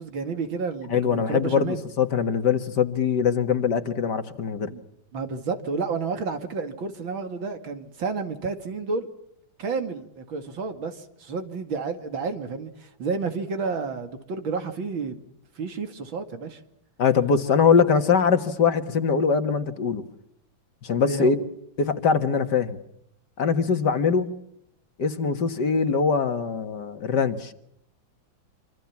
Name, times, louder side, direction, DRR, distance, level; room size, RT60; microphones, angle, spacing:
voice 1, 0.0-1.8 4.7-4.8 5.1-9.1 9.6-15.2 15.6-16.6 21.0-21.4, right 4 dB, 75° right, 8 dB, 3.0 m, -31 dB
voice 2, 0.9-4.7 17.0-20.0 20.8-21.4 21.8-22.8 23.4-24.3 25.0-27.5, left 6 dB, 60° left, 9 dB, 2.2 m, -22 dB
26.5 x 26.0 x 7.3 m, 0.77 s
omnidirectional pair, 2.2 m